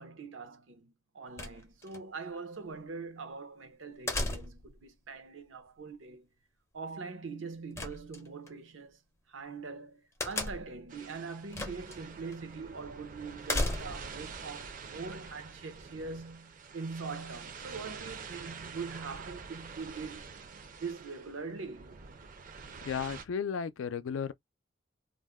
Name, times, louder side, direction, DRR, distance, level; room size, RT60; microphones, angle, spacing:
voice 1, 0.0-6.3 6.7-9.0 9.3-20.2 20.7-22.0, right 4 dB, 75° right, 0.7 m, -43 dB
sound 1, 1.4-2.0 4.1-4.8 7.7-8.5 10.2-10.8 11.5-12.0 12.3-12.4 13.4-14.2, left 2 dB, 15° left, 0.5 m, -34 dB
sound 2, 10.9-23.3, right 5 dB, 45° right, 0.5 m, -47 dB
voice 2, 22.8-24.3, left 6 dB, 85° left, 0.4 m, -34 dB
2.5 x 2.0 x 3.5 m
head